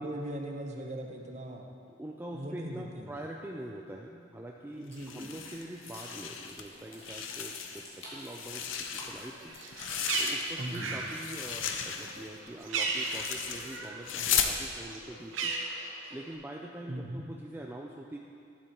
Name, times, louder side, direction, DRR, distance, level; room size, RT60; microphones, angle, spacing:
voice 1, 0.0-1.7 2.3-3.1 4.8-5.4 10.6-10.9 16.9-17.3, right 1 dB, 35° right, 2 dB, 0.7 m, -39 dB
voice 2, 1.9-9.6 10.2-15.6 16.1-18.2, right 1 dB, 10° right, 0 dB, 0.3 m, -44 dB
sound 1, 4.9-6.6 6.9-7.9 8.3-10.7 11.1-14.6, left 8 dB, 80° left, 0.6 m, -35 dB
sound 2, 4.9-10.9, left 1 dB, 30° left, 2.1 m, -50 dB
Bird, 9.5-14.1 14.4-16.3, right 3 dB, 80° right, 0.9 m, -35 dB
11.5 x 8.1 x 2.9 m, 2.4 s
head